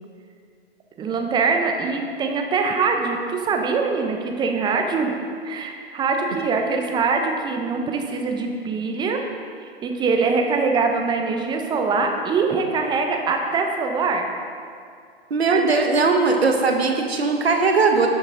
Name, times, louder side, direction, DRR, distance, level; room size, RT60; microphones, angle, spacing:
voice 1, 1.0-5.2 5.4-9.2 9.6-14.3 15.5-15.6, right 4 dB, 15° right, 3 dB, 0.8 m, -23 dB
voice 2, 15.3-18.1, right 4 dB, 80° right, 3 dB, 1.4 m, -19 dB
12.0 x 7.1 x 3.8 m, 2.2 s
figure-of-eight pair, 115°, 31 cm